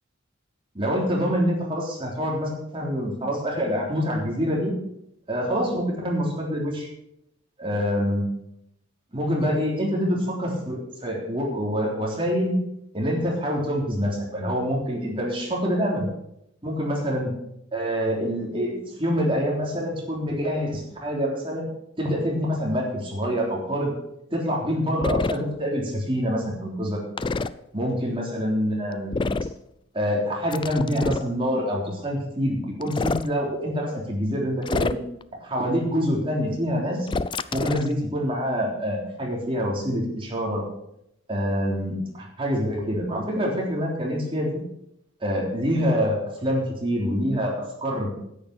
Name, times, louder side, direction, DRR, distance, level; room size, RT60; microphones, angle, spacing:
voice 1, 0.8-4.7 5.3-6.9 7.6-8.2 9.1-12.6 12.9-16.1 16.6-17.3 17.7-21.7 22.0-23.9 24.3-27.0 27.7-29.2 29.9-35.0 35.4-37.1 37.5-40.6 41.3-44.6 45.2-48.1, equal, 25° right, -2 dB, 3.5 m, -26 dB
sound 1, 25.0-25.4 27.2-27.5 29.1-29.6 30.5-31.3 32.8-33.3 34.6-35.2 37.1-37.9, left 3 dB, 25° left, 0.4 m, -27 dB
10.5 x 9.6 x 6.6 m, 0.79 s
head